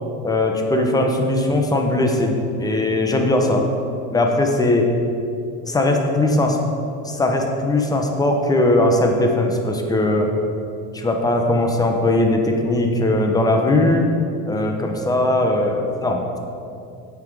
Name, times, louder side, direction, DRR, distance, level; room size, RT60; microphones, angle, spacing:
voice 1, 0.2-3.7 4.1-4.9 5.6-6.6 7.0-10.3 10.9-14.1 14.5-16.4, left 2 dB, 10° left, 2 dB, 0.7 m, -19 dB
8.5 x 6.0 x 4.7 m, 2.6 s
cardioid pair, 145°, 39 cm